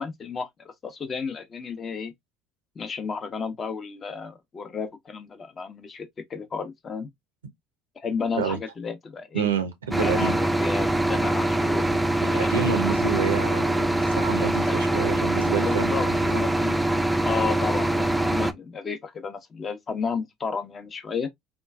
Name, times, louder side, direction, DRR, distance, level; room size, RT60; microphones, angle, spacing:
voice 1, 0.0-2.1 2.8-7.1 8.0-9.5 10.0-11.9 12.3-12.7 14.7-14.8 15.4-16.7 17.2-21.3, left 5 dB, 35° left, 0.7 m, -32 dB
voice 2, 9.3-10.4 12.2-16.4, right 7 dB, 90° right, 0.5 m, -29 dB
sound 1, 9.9-18.5, right 1 dB, 5° right, 0.4 m, -23 dB
3.0 x 2.3 x 2.2 m
hypercardioid pair, 70°, 0 cm